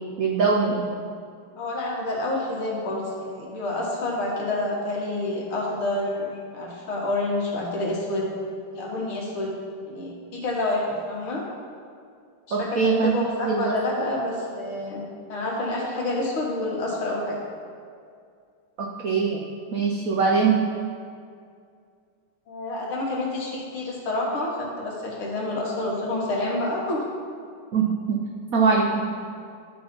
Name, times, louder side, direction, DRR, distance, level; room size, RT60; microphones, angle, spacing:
voice 1, 0.2-0.9 12.5-13.1 13.5-13.7 18.8-19.4 19.7-20.6 27.7-28.2 28.5-29.0, right 5 dB, 75° right, -1 dB, 0.8 m, -22 dB
voice 2, 1.5-8.3 8.7-9.5 9.8-11.4 12.5-17.4 22.5-27.0, left 2 dB, 75° left, -3 dB, 2.3 m, -28 dB
11.5 x 3.9 x 5.3 m, 2.3 s
omnidirectional pair, 2.3 m